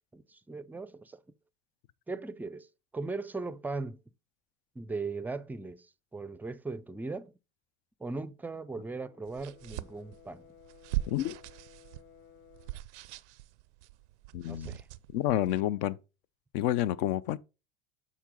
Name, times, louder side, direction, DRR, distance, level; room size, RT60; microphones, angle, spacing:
voice 1, 0.1-1.2 2.1-4.0 4.8-5.9 6.1-7.3 8.0-10.4 14.5-14.9, right 3 dB, 5° right, 0.4 m, -38 dB
Brass instrument, 8.6-12.8, left 10 dB, 40° left, 3.9 m, -58 dB
sound 1, 9.3-15.6, right 16 dB, 85° right, 0.5 m, -41 dB
voice 2, 11.1-11.4 14.3-14.8 15.1-16.0 16.5-17.4, left 13 dB, 60° left, 0.6 m, -29 dB
7.1 x 4.1 x 3.8 m
hypercardioid pair, 75°, 34 cm